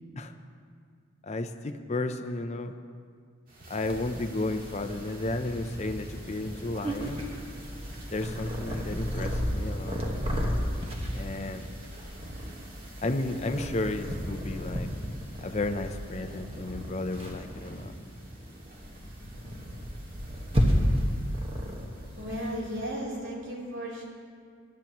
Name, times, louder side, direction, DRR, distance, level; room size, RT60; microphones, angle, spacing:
voice 1, 1.2-2.7 3.7-7.2 8.1-10.0 11.1-11.7 13.0-14.9 15.4-17.9, left 2 dB, 30° left, 7 dB, 0.6 m, -33 dB
sound 1, 3.5-22.8, right 1 dB, 45° right, 2.0 m, -46 dB
Purr, 3.9-22.5, equal, 25° right, 1.4 m, -33 dB
voice 2, 22.1-24.0, equal, 60° right, -4 dB, 3.4 m, -35 dB
22.5 x 12.0 x 3.0 m, 2.1 s
head